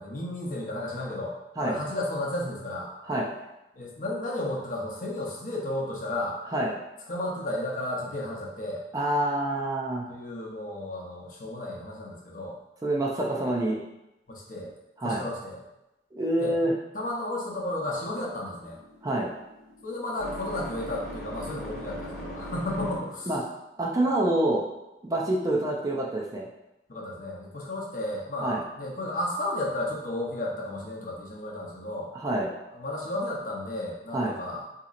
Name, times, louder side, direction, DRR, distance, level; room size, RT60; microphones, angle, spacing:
voice 1, 0.0-1.3 1.6-2.9 3.7-6.4 7.1-8.8 10.1-12.6 14.3-14.7 15.0-15.6 16.4-16.5 16.9-18.8 19.8-23.4 26.9-32.1 32.7-34.6, left 1 dB, 50° left, -3 dB, 0.7 m, -33 dB
voice 2, 8.9-10.1 12.8-13.8 15.0-15.2 16.1-16.7 19.0-19.3 23.3-23.4 23.8-24.6 25.0-26.5 28.4-28.6 32.1-32.5 34.1-34.3, right 1 dB, 20° right, -2 dB, 0.4 m, -26 dB
sound 1, 17.5-23.3, equal, 5° left, 0.9 m, -41 dB
4.0 x 2.8 x 2.4 m, 0.93 s
head